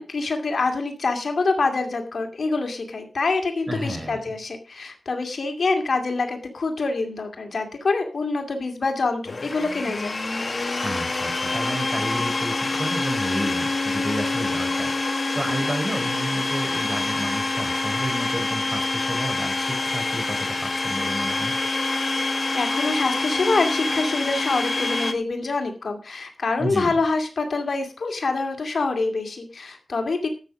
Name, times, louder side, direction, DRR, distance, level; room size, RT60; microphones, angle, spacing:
voice 1, 0.0-10.1 22.2-30.3, left 3 dB, 60° left, 4 dB, 2.4 m, -26 dB
voice 2, 3.7-4.2 10.8-21.6 26.6-27.0, equal, 25° right, 4 dB, 4.2 m, -31 dB
Domestic sounds home sounds, 9.2-25.1, left 3 dB, 40° left, 1.5 m, -26 dB
12.5 x 8.1 x 5.2 m, 0.34 s
wide cardioid pair, 115°, 0 cm